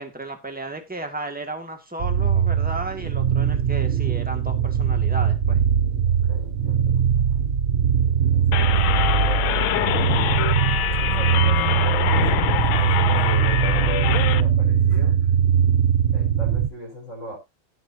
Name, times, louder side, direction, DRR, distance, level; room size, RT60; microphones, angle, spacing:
voice 1, 0.0-5.6, right 2 dB, 5° right, 5 dB, 1.9 m, -34 dB
sound 1, 2.0-16.7, right 8 dB, 45° right, 0.7 m, -21 dB
voice 2, 6.1-7.4 7.9-10.3 11.1-15.2 16.1-17.4, equal, 35° left, -1 dB, 5.1 m, -38 dB
sound 2, 8.5-14.4, left 12 dB, 85° left, 1.5 m, -24 dB
17.0 x 6.0 x 2.8 m, 0.24 s
omnidirectional pair, 2.2 m